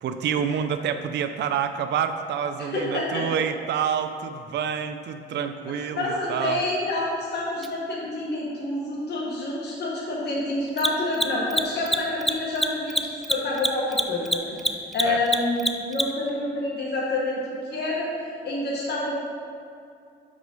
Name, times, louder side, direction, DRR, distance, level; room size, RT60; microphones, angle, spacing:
voice 1, 0.0-6.6 15.0-15.2, right 7 dB, 60° right, 8 dB, 0.4 m, -28 dB
voice 2, 2.6-3.3 5.9-18.1 18.4-19.1, left 2 dB, 55° left, -4 dB, 1.4 m, -28 dB
Mechanisms, 7.6-7.7 10.7-16.3, equal, ahead, 0.4 m, -25 dB
6.2 x 4.9 x 5.2 m, 2.4 s
cardioid pair, 90°, 20 cm